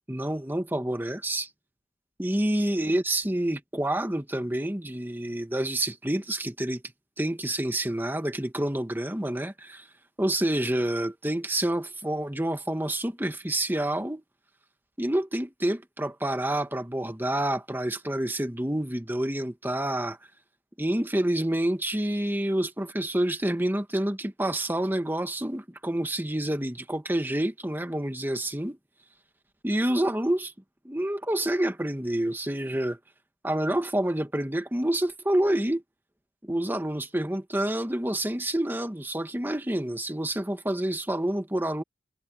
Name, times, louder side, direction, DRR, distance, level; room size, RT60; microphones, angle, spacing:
voice 1, 0.1-1.5 2.2-6.8 7.2-9.9 10.2-14.2 15.0-20.2 20.8-28.8 29.6-30.5 30.8-33.0 33.4-35.8 36.4-41.8, right 1 dB, 10° right, 1.4 m, -28 dB
head